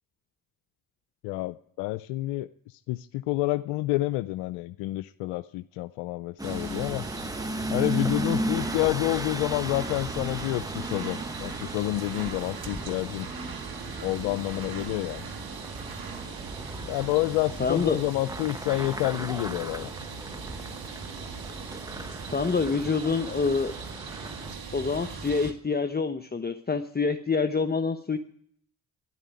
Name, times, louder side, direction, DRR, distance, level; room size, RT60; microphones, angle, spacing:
voice 1, 1.2-7.1 7.7-13.3 14.0-15.3 16.9-19.9, left 18 dB, 80° left, 14 dB, 0.5 m, -29 dB
sound 1, 6.4-24.5, right 1 dB, 10° right, 0.9 m, -36 dB
sound 2, 6.4-25.5, right 5 dB, 60° right, 2.0 m, -39 dB
voice 2, 17.6-18.0 22.3-23.7 24.7-28.2, left 4 dB, 20° left, 8 dB, 1.0 m, -26 dB
12.5 x 11.0 x 9.5 m, 0.66 s
hypercardioid pair, 40°, 42 cm